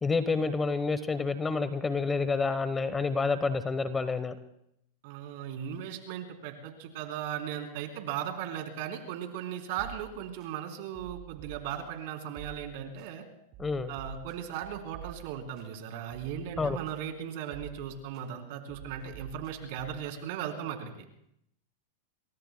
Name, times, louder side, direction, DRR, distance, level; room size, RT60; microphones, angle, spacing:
voice 1, 0.0-4.4 13.6-13.9 16.6-16.8, left 4 dB, 15° left, 12 dB, 1.0 m, -28 dB
voice 2, 5.0-13.2 13.9-21.1, right 9 dB, 60° right, 4 dB, 3.4 m, -37 dB
sound 1, 9.8-10.5 10.9-12.0 12.4-13.1 13.5-15.7 16.1-17.2 17.5-18.3 18.7-20.1, right 12 dB, 45° right, 4.3 m, -48 dB
28.5 x 23.0 x 2.2 m, 0.77 s
hypercardioid pair, 125°, 0 cm